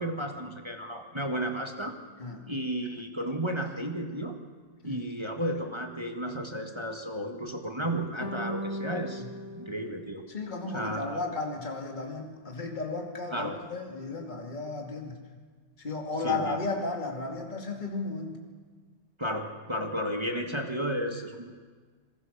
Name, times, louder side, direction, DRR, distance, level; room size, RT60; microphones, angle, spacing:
voice 1, 0.0-1.9 2.5-4.3 4.8-9.2 9.5-10.2 10.7-11.1 13.3-13.6 16.2-16.6 19.2-21.6, equal, 15° right, 3 dB, 1.7 m, -33 dB
sound 1, 8.2-10.8, equal, 85° left, 3.5 m, -38 dB
voice 2, 10.3-15.2 15.8-18.4, left 3 dB, 20° left, 1 dB, 2.6 m, -34 dB
26.0 x 22.5 x 6.8 m, 1.5 s
omnidirectional pair, 2.2 m